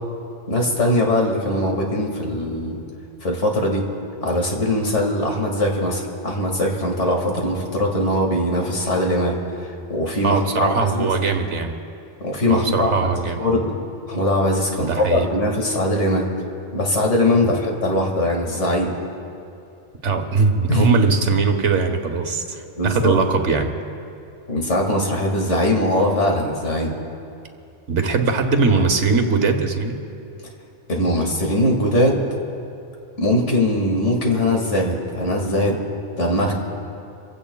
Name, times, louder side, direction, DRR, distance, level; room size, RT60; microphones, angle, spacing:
voice 1, 0.5-2.8 3.2-3.8 4.2-9.3 9.6-11.1 12.2-13.1 13.4-13.8 14.1-16.3 16.7-18.9 20.7-21.0 22.8-23.2 24.5-26.9 30.9-32.2 33.2-35.8 36.2-36.5, left 1 dB, 75° left, 0 dB, 2.3 m, -21 dB
voice 2, 10.2-11.8 12.5-13.5 14.8-15.3 17.4-17.5 20.0-23.7 27.9-30.0, right 4 dB, 75° right, 6 dB, 1.4 m, -20 dB
29.0 x 16.0 x 2.3 m, 2.7 s
omnidirectional pair, 1.2 m